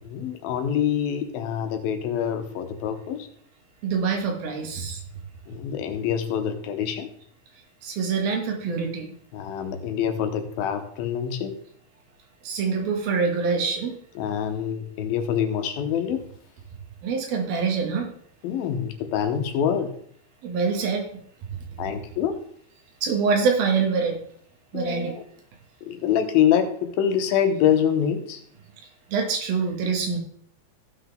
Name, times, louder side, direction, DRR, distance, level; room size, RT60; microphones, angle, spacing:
voice 1, 0.0-3.3 5.5-7.1 9.3-11.6 14.2-16.2 18.4-19.9 21.8-22.4 24.7-25.2 25.8-28.4, left 9 dB, 90° left, 6 dB, 2.9 m, -25 dB
voice 2, 3.8-5.0 7.8-9.1 12.4-14.0 17.0-18.1 20.4-21.1 23.0-24.2 24.7-25.1 29.1-30.2, right 5 dB, 90° right, 2 dB, 3.5 m, -25 dB
16.0 x 6.0 x 3.5 m, 0.62 s
omnidirectional pair, 4.1 m